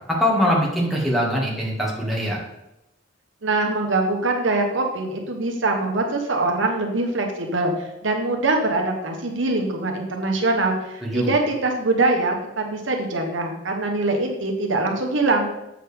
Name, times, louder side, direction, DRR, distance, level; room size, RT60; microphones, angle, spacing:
voice 1, 0.1-2.4 11.0-11.3, equal, ahead, -5 dB, 1.8 m, -22 dB
voice 2, 3.4-15.5, right 2 dB, 85° right, 2 dB, 1.2 m, -23 dB
7.6 x 6.5 x 3.5 m, 0.88 s
head